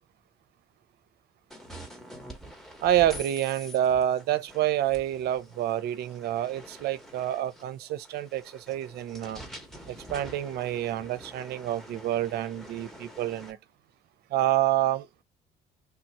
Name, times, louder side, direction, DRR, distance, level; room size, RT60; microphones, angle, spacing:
sound 1, 1.5-13.5, equal, ahead, 1.0 m, -47 dB
voice 1, 2.8-9.4 9.9-13.6 14.3-15.2, right 12 dB, 70° right, 0.6 m, -28 dB
3.4 x 2.3 x 4.1 m
cardioid pair, 110°, 17 cm